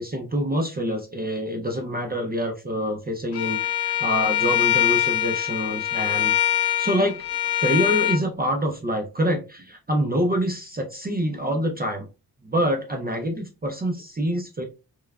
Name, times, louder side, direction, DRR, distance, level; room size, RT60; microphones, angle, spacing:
voice 1, 0.0-7.2 7.6-12.1 12.4-14.6, equal, 25° right, 3 dB, 0.5 m, -26 dB
Bowed string instrument, 3.3-8.2, left 12 dB, 75° left, 0.6 m, -23 dB
3.0 x 2.2 x 2.3 m, 0.31 s
cardioid pair, 45°, 41 cm